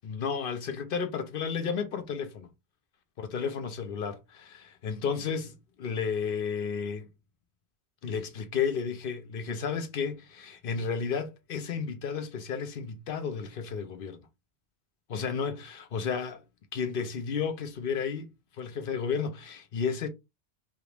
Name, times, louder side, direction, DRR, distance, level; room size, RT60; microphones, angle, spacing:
voice 1, 0.0-2.5 3.2-7.1 8.0-14.2 15.1-16.4 16.7-18.3 18.6-20.1, left 6 dB, 60° left, 0.8 m, -32 dB
3.4 x 2.5 x 2.9 m
omnidirectional pair, 1.1 m